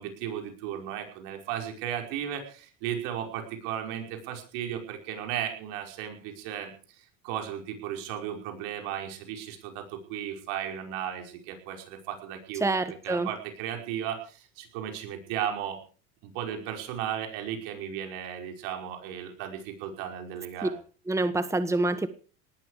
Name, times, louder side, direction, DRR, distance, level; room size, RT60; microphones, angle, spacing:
voice 1, 0.0-12.7 13.0-15.8 16.2-20.7, right 10 dB, 75° right, 4 dB, 5.5 m, -35 dB
voice 2, 12.6-13.3 20.6-20.7 21.1-22.1, right 2 dB, 5° right, 12 dB, 1.4 m, -26 dB
19.0 x 13.0 x 5.0 m, 0.39 s
supercardioid pair, 100°, 38 cm